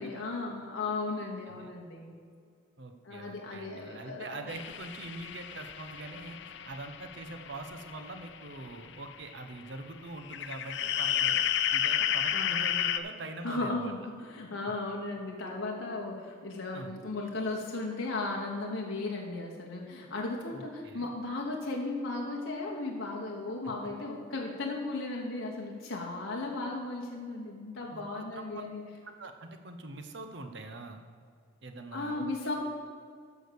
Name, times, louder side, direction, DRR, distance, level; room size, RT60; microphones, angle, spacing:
voice 1, 0.0-2.1 3.0-4.5 12.3-12.7 13.4-28.8 31.9-32.5, left 2 dB, 75° left, -1 dB, 1.2 m, -36 dB
voice 2, 2.8-11.4 11.7-13.9 16.7-17.0 20.5-21.1 27.9-28.6 29.0-31.0 31.6-32.3, right 2 dB, 55° right, 6 dB, 0.9 m, -43 dB
sound 1, 4.5-9.0 9.4-9.5 10.2-13.0, left 10 dB, 55° left, 0.5 m, -32 dB
13.0 x 5.0 x 6.8 m, 2.1 s
head